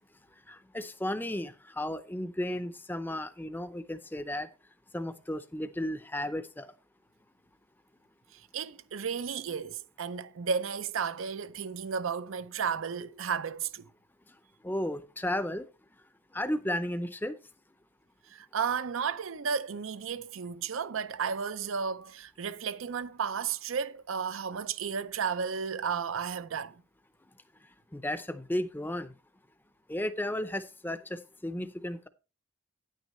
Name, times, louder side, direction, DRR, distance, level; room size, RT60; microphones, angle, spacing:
voice 1, 0.5-4.5 4.9-6.7 14.6-15.7 16.3-17.4 27.9-29.1 29.9-32.1, left 1 dB, 10° left, 0.6 m, -34 dB
voice 2, 8.3-13.9 18.3-26.8, right 6 dB, 70° right, 0.5 m, -33 dB
9.9 x 9.2 x 3.1 m
head